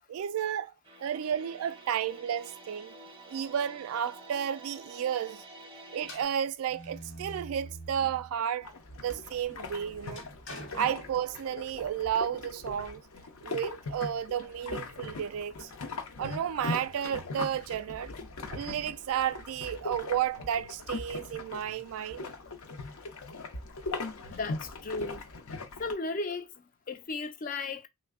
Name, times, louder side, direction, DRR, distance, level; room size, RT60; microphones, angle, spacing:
voice 1, 0.1-0.7 1.0-3.0 3.3-5.4 5.9-8.7 9.0-10.2 10.7-13.0 13.4-15.7 16.2-18.1 18.5-22.3, right 9 dB, 85° right, 0.3 m, -32 dB
sound 1, 0.8-6.2, right 2 dB, 25° right, 0.5 m, -49 dB
sound 2, 6.0-8.4 8.9-11.7, right 1 dB, 65° left, 1.0 m, -47 dB
sound 3, 8.6-25.9, left 3 dB, 85° left, 0.7 m, -40 dB
voice 2, 24.3-25.2 25.8-26.5 26.9-27.9, left 3 dB, 40° left, 0.3 m, -35 dB
3.2 x 2.1 x 3.5 m
head